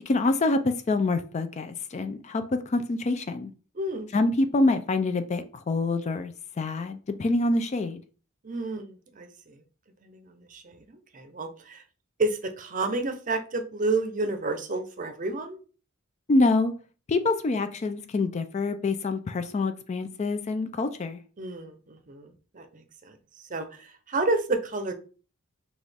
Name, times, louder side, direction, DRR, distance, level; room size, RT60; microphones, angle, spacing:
voice 1, 0.1-3.5 4.1-8.0 16.3-16.7 17.1-21.2, left 2 dB, 30° left, 0.3 m, -26 dB
voice 2, 3.8-4.1 8.4-9.6 10.0-11.8 12.2-15.6 21.4-23.2 23.5-24.9, right 2 dB, 35° right, 0.6 m, -31 dB
6.1 x 2.4 x 3.3 m
head